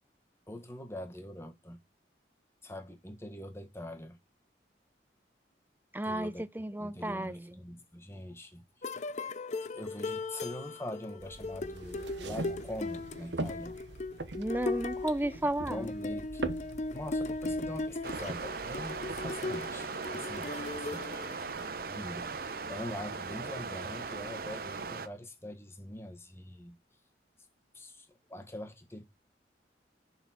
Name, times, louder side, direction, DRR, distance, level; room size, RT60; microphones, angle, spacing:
voice 1, 0.5-1.8 2.6-4.2 6.0-6.4 6.8-9.1 9.6-13.8 15.7-16.4 16.9-21.3 21.9-26.8 27.7-29.1, left 1 dB, 15° left, 1.4 m, -44 dB
voice 2, 5.9-7.6 14.4-15.9, right 1 dB, 10° right, 0.5 m, -33 dB
sound 1, 8.8-22.0, left 2 dB, 40° left, 0.5 m, -38 dB
sound 2, 11.2-19.3, right 2 dB, 75° right, 1.0 m, -42 dB
sound 3, 18.0-25.1, right 4 dB, 55° right, 0.7 m, -39 dB
7.0 x 4.1 x 5.7 m
head